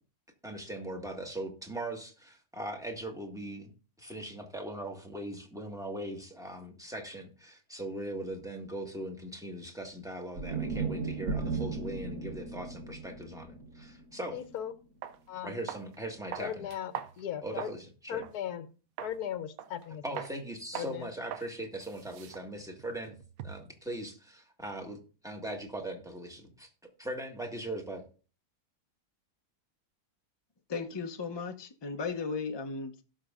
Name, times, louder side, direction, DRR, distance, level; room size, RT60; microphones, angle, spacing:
voice 1, 0.4-3.7 4.0-14.4 15.4-16.6 17.4-18.2 20.0-23.1 23.4-26.7 27.0-28.0, right 1 dB, ahead, 1.5 m, -40 dB
sound 1, 10.3-14.6, right 4 dB, 80° right, 1.8 m, -36 dB
voice 2, 14.3-14.7 15.3-15.6 16.4-17.7 18.1-18.7 19.0-20.3 20.7-21.1, left 10 dB, 70° left, 1.3 m, -38 dB
sound 2, 14.4-14.5 15.0-15.2 15.7-16.0 16.3-17.8 18.2-18.4 19.0-19.2 19.6-19.9 20.2-20.4 20.7-21.0 21.3-21.5 21.8-23.7, right 9 dB, 65° right, 1.0 m, -42 dB
voice 3, 30.7-33.0, left 4 dB, 25° left, 0.5 m, -36 dB
17.5 x 6.3 x 2.5 m
omnidirectional pair, 1.7 m